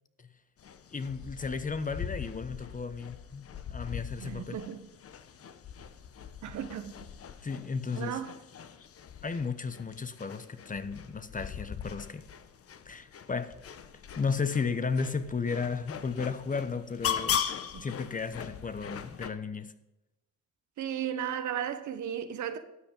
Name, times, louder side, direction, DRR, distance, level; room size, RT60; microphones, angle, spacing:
sound 1, 0.6-19.3, left 8 dB, 50° left, 1.0 m, -40 dB
voice 1, 0.9-4.6 7.4-8.2 9.2-12.2 12.9-13.5 14.2-17.4 17.8-19.7, left 5 dB, 25° left, 0.9 m, -34 dB
voice 2, 4.2-4.8 6.4-7.0 8.0-8.3 17.7-17.9 20.8-22.6, right 9 dB, 70° right, 1.2 m, -35 dB
13.0 x 7.8 x 5.4 m
cardioid pair, 90°, 30 cm